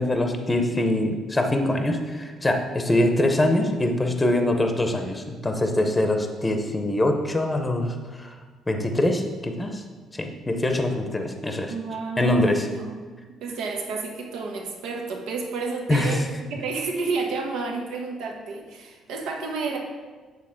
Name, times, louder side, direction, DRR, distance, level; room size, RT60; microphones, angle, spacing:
voice 1, 0.0-8.3 8.7-9.8 10.1-11.7 12.2-12.7 15.9-16.2, left 1 dB, 10° left, 5 dB, 0.7 m, -23 dB
voice 2, 11.7-13.0 13.4-16.2 16.5-19.8, right 4 dB, 90° right, 2 dB, 1.3 m, -30 dB
8.9 x 4.1 x 5.8 m, 1.4 s
cardioid pair, 145°, 0 cm